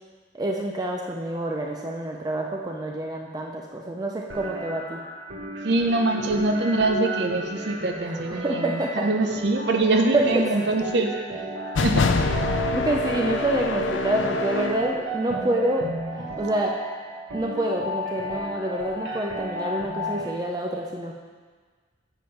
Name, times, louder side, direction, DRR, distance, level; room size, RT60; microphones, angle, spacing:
voice 1, 0.3-5.0 8.1-8.2 8.4-9.1 10.1-10.4 12.7-15.9 16.4-16.8 17.3-21.1, right 1 dB, 20° right, 0 dB, 0.5 m, -27 dB
sound 1, 4.3-20.3, right 1 dB, 75° right, 1.2 m, -34 dB
voice 2, 5.6-11.4 11.8-12.1 12.4-12.5, right 2 dB, 55° right, 3 dB, 0.7 m, -24 dB
sound 2, 11.7-14.9, left 3 dB, 70° left, 0.5 m, -25 dB
7.4 x 5.2 x 5.8 m, 1.5 s
head